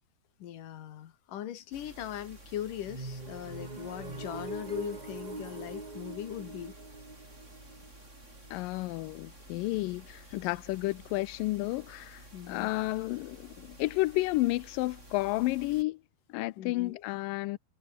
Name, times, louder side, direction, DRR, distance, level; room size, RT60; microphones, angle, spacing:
voice 1, 0.4-6.7 12.3-12.7 16.6-17.0, left 11 dB, 60° left, 3.0 m, -40 dB
sound 1, 1.7-15.8, right 1 dB, 15° right, 7.5 m, -52 dB
sound 2, 2.8-8.6, right 3 dB, 70° right, 0.4 m, -42 dB
voice 2, 8.5-16.0 16.3-17.6, left 20 dB, 85° left, 2.0 m, -31 dB
omnidirectional pair, 4.7 m